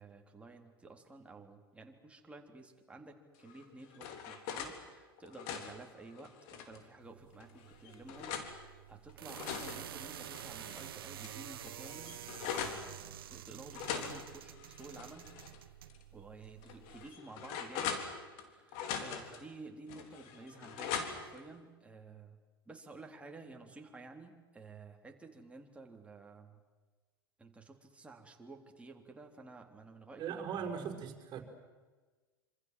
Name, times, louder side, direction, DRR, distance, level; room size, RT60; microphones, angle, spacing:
voice 1, 0.0-15.3 16.1-22.4 22.7-26.6 27.4-31.0, right 3 dB, 10° right, 2 dB, 3.7 m, -53 dB
sound 1, 3.5-4.8 5.2-6.8 7.4-8.5 9.1-10.8 11.2-11.3 11.6-12.8 13.7-15.6 15.9-16.0 16.6-18.4 18.7-19.4 19.9-21.4, left 7 dB, 55° left, 3.6 m, -42 dB
sound 2, 7.0-17.1, right 11 dB, 70° right, 0.9 m, -49 dB
voice 2, 30.2-31.4, right 7 dB, 35° right, 3 dB, 5.0 m, -39 dB
26.5 x 26.5 x 7.7 m, 1.3 s
hypercardioid pair, 90°, 12 cm